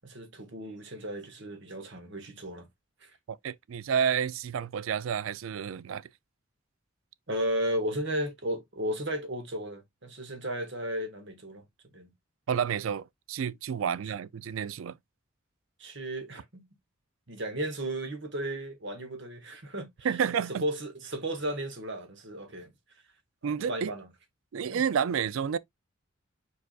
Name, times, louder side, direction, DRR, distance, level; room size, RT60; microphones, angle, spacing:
voice 1, 0.0-2.7 3.0-3.1 7.3-11.6 11.9-12.1 13.8-13.9 15.8-16.6 17.3-20.1 20.6-22.7 23.4-24.1 24.7-24.8, right 1 dB, 60° right, 1.6 m, -34 dB
voice 2, 3.3-6.1 12.5-15.0 20.0-20.6 23.4-23.9 24.5-25.6, right 7 dB, 80° right, 0.4 m, -30 dB
4.8 x 4.6 x 2.3 m
head